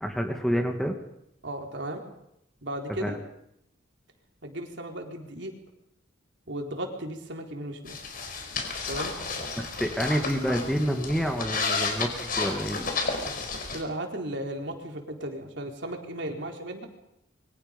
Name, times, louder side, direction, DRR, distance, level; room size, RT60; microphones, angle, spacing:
voice 1, 0.0-1.0 3.0-3.2 9.6-12.9, equal, ahead, 4 dB, 2.1 m, -28 dB
voice 2, 1.4-2.0 2.6-3.2 4.4-5.5 6.5-8.0 8.9-9.1 13.7-16.9, right 1 dB, 65° right, 2 dB, 4.2 m, -35 dB
sound 1, 7.9-13.8, left 4 dB, 45° left, 4.9 m, -32 dB
28.5 x 24.0 x 5.3 m, 0.77 s
head